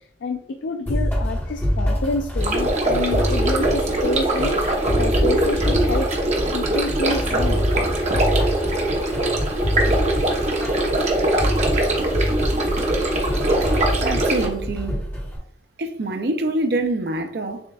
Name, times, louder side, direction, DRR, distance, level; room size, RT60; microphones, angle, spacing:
voice 1, 0.0-6.1 6.5-7.7, left 3 dB, 75° left, 0.3 m, -28 dB
sound 1, 0.9-15.4, equal, 10° left, 1.1 m, -26 dB
sound 2, 2.4-14.5, right 1 dB, 35° right, 0.8 m, -22 dB
voice 2, 14.0-15.0 15.8-17.6, right 2 dB, 60° right, 0.5 m, -25 dB
7.0 x 2.5 x 2.3 m
head